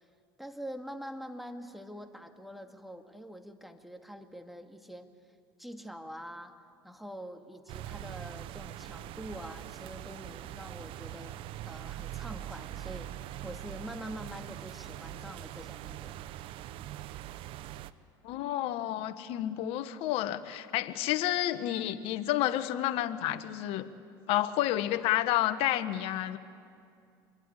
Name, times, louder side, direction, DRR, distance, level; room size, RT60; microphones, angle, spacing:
voice 1, 0.4-5.1 5.6-6.6 6.8-13.1 13.4-16.2, equal, ahead, 5 dB, 2.2 m, -45 dB
sound 1, 7.7-17.9, right 13 dB, 60° right, 0.9 m, -42 dB
voice 2, 18.2-23.9 24.3-26.4, left 13 dB, 65° left, 11 dB, 1.3 m, -30 dB
25.5 x 21.5 x 9.9 m, 2.4 s
supercardioid pair, 90°, 10 cm